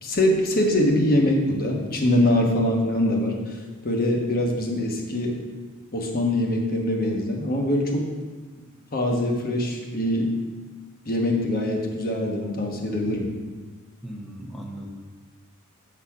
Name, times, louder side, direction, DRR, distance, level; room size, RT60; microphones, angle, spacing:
voice 1, 0.0-3.6 3.8-5.4 5.9-8.1 8.9-10.3 11.0-13.3, left 1 dB, 40° left, 1 dB, 1.1 m, -23 dB
voice 2, 14.0-14.9, right 1 dB, ahead, -2 dB, 0.8 m, -37 dB
7.7 x 4.1 x 5.7 m, 1.4 s
head